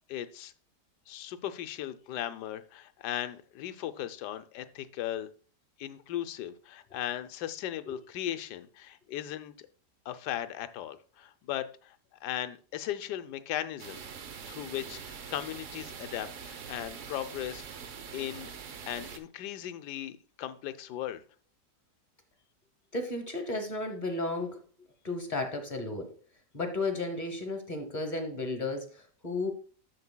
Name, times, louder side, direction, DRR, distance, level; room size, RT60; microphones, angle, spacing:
voice 1, 0.1-0.5 1.1-5.3 5.8-9.5 10.1-11.9 12.2-14.0 14.5-17.6 18.1-18.5 18.8-21.2, left 12 dB, 75° left, 11 dB, 1.2 m, -37 dB
sound 1, 13.8-19.2, right 7 dB, 55° right, 1.0 m, -44 dB
voice 2, 22.9-24.6 25.0-26.1 26.5-29.5, left 2 dB, 30° left, 6 dB, 1.0 m, -33 dB
11.0 x 7.3 x 2.2 m, 0.40 s
omnidirectional pair, 1.8 m